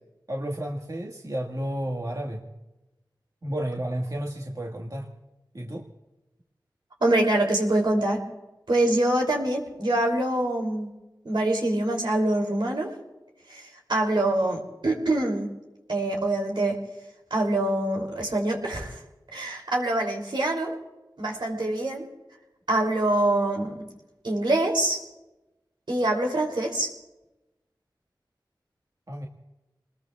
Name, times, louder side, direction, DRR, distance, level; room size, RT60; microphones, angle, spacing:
voice 1, 0.3-2.4 3.4-5.1 5.5-5.8 29.1-29.3, right 1 dB, 50° right, -1 dB, 1.7 m, -31 dB
voice 2, 7.0-8.2 8.7-10.9 11.2-12.9 13.5-15.5 15.9-16.8 17.3-19.0 19.3-20.7 21.2-22.1 22.7-23.7 24.2-25.0 25.9-26.9, right 1 dB, 80° right, 0 dB, 3.1 m, -25 dB
28.0 x 20.5 x 2.4 m, 1.0 s
wide cardioid pair, 45°, 8 cm